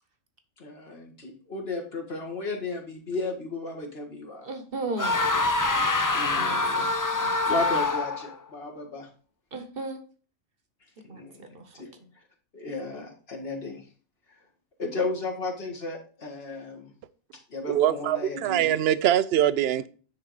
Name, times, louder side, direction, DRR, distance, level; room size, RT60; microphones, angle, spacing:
voice 1, 0.6-4.5 6.1-6.9 7.5-9.1 11.1-11.4 11.8-11.9 12.5-13.8 14.8-16.9 17.5-18.8, left 3 dB, 45° left, 1.9 m, -34 dB
voice 2, 4.4-5.3 6.3-6.9 7.2-7.3 9.5-10.0 11.1-11.6, right 2 dB, 45° right, 1.1 m, -35 dB
sound 1, 5.0-8.3, left 3 dB, 30° left, 0.3 m, -25 dB
voice 3, 17.6-19.9, right 11 dB, 65° right, 0.6 m, -23 dB
9.8 x 3.9 x 4.8 m
omnidirectional pair, 1.4 m